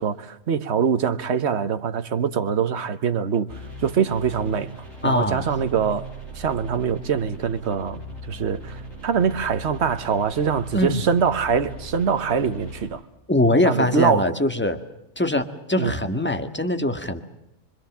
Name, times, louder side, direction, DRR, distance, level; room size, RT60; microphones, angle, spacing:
voice 1, 0.0-3.5 3.8-4.7 5.0-6.1 6.3-13.0 13.6-14.3 15.8-15.9, right 6 dB, 50° right, 1.4 m, -23 dB
sound 1, 3.5-12.9, equal, 55° left, 8.0 m, -39 dB
voice 2, 5.0-5.5 10.7-11.0 13.3-14.8 15.1-17.2, left 1 dB, 5° left, 1.7 m, -22 dB
26.0 x 24.5 x 7.4 m
omnidirectional pair, 1.6 m